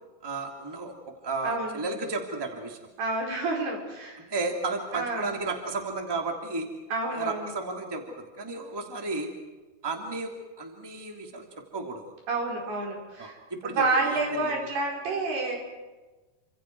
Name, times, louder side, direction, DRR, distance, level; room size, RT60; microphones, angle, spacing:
voice 1, 0.2-0.9 1.2-2.8 4.3-6.7 7.1-9.3 9.8-11.5 11.7-12.0 13.2-14.6, right 3 dB, 5° right, 3 dB, 2.2 m, -33 dB
voice 2, 1.4-1.8 3.0-4.2 4.9-5.4 6.9-7.5 12.3-13.4 13.6-15.6, right 3 dB, 85° right, 0 dB, 6.9 m, -29 dB
29.0 x 26.0 x 4.8 m, 1.2 s
omnidirectional pair, 4.5 m